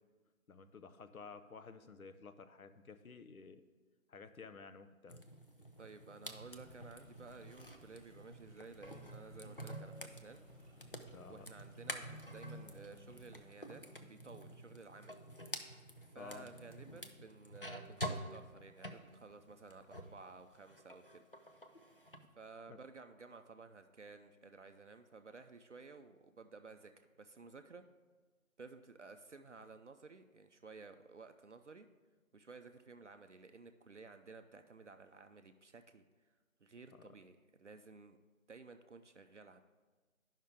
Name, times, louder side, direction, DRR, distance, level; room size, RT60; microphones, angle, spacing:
voice 1, 0.5-3.6 4.1-5.3 11.1-11.5 16.1-16.5 22.7-22.8 37.0-37.1, left 5 dB, 80° left, 10 dB, 0.7 m, -53 dB
sound 1, 5.1-20.2 20.6-22.2, equal, 40° left, 0.4 m, -49 dB
voice 2, 5.8-10.4 11.3-15.2 16.1-21.2 22.4-27.9 28.6-31.9 32.3-36.0 36.6-38.2 38.5-39.6, right 4 dB, 60° right, 8 dB, 0.5 m, -55 dB
Stream, 6.3-13.4, right 1 dB, 5° right, 1.2 m, -66 dB
10.5 x 5.6 x 3.5 m, 1.3 s
figure-of-eight pair, 160°, 42 cm